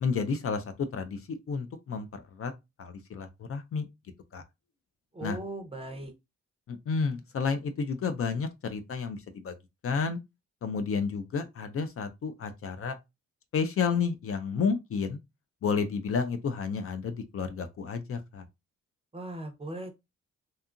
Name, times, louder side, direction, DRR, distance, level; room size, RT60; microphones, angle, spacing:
voice 1, 0.0-0.6 0.9-2.5 2.8-3.9 4.3-4.4 5.2-5.4 6.7-9.5 9.8-10.2 10.6-13.0 13.5-15.2 15.6-18.4, left 5 dB, 50° left, 0.4 m, -31 dB
voice 2, 5.1-6.1 19.1-19.9, right 1 dB, 20° right, 0.6 m, -38 dB
2.7 x 2.3 x 2.5 m
cardioid pair, 95°, 29 cm